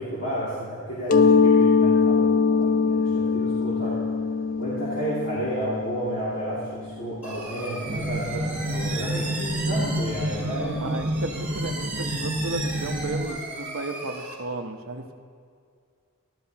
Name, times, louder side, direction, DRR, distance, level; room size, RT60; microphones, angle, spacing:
voice 1, 0.0-4.0 4.6-10.8, equal, 60° left, -10 dB, 2.5 m, -31 dB
Mallet percussion, 1.1-6.6, left 5 dB, 40° left, 0.3 m, -22 dB
sound 1, 7.2-14.3, right 2 dB, 5° right, 1.3 m, -36 dB
sound 2, 7.8-13.3, right 1 dB, 40° right, 0.7 m, -29 dB
voice 2, 10.8-15.2, right 2 dB, 75° right, 5 dB, 0.9 m, -34 dB
13.0 x 12.0 x 2.9 m, 2.2 s
head